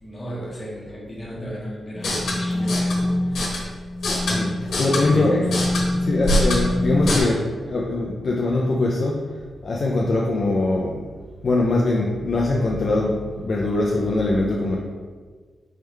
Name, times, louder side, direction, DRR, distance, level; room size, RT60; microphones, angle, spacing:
voice 1, 0.0-3.6 5.0-5.7, equal, 20° left, -6 dB, 1.4 m, -34 dB
sound 1, 1.9-7.2, left 1 dB, 85° left, 1.1 m, -23 dB
voice 2, 4.2-5.5 5.9-11.1 11.4-14.8, left 2 dB, 50° left, -2 dB, 0.5 m, -22 dB
4.5 x 3.6 x 3.2 m, 1.5 s
wide cardioid pair, 120°, 0 cm